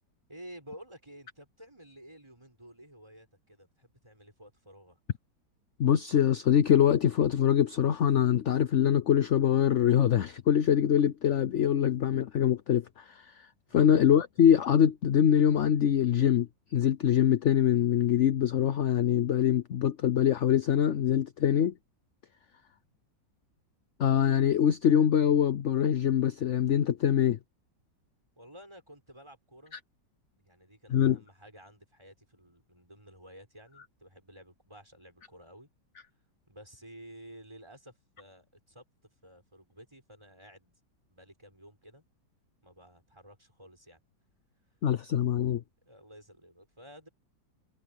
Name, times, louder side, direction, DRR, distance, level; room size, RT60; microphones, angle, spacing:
voice 1, 0.3-5.0 13.7-14.0 28.4-29.8 30.4-35.7 36.5-38.8 39.2-40.7 41.1-42.0 42.6-44.0 45.8-47.1, equal, 15° right, 6.7 m, -52 dB
voice 2, 5.8-13.5 13.7-21.7 24.0-27.4 30.9-31.2 44.8-45.6, left 9 dB, 60° left, 0.7 m, -24 dB
omnidirectional pair, 2.0 m